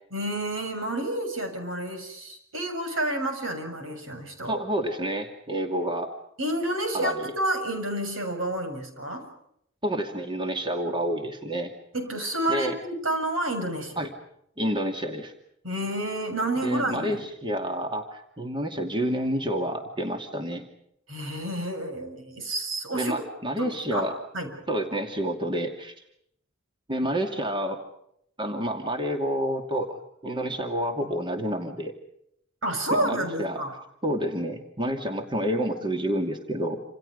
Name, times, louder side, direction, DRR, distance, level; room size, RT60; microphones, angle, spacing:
voice 1, 0.1-4.6 6.4-9.3 11.9-14.1 15.6-17.2 21.1-23.2 23.6-24.5 32.6-33.7, right 1 dB, 85° right, 5 dB, 7.3 m, -30 dB
voice 2, 4.5-6.2 6.9-7.3 9.8-11.7 12.5-12.7 14.0-14.1 14.6-15.3 16.6-20.6 22.9-24.1 24.7-25.9 26.9-27.8 28.4-31.9 32.9-33.6 34.0-36.8, equal, 25° right, 5 dB, 2.5 m, -29 dB
28.5 x 28.0 x 5.3 m, 0.73 s
head